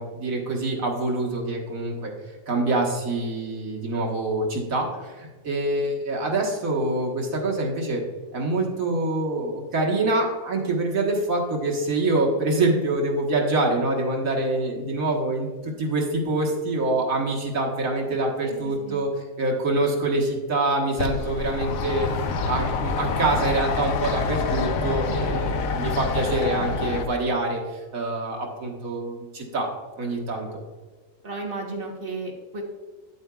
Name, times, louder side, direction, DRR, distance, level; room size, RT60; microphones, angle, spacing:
voice 1, 0.0-2.1 2.5-8.0 8.3-19.1 19.4-29.7 30.0-30.5, right 2 dB, 85° right, 0 dB, 1.8 m, -25 dB
sound 1, 21.0-27.1, left 4 dB, 90° left, 1.1 m, -26 dB
voice 2, 25.0-25.5 31.2-32.6, right 3 dB, 45° right, 1 dB, 1.2 m, -34 dB
9.2 x 8.0 x 2.3 m, 1.4 s
omnidirectional pair, 1.4 m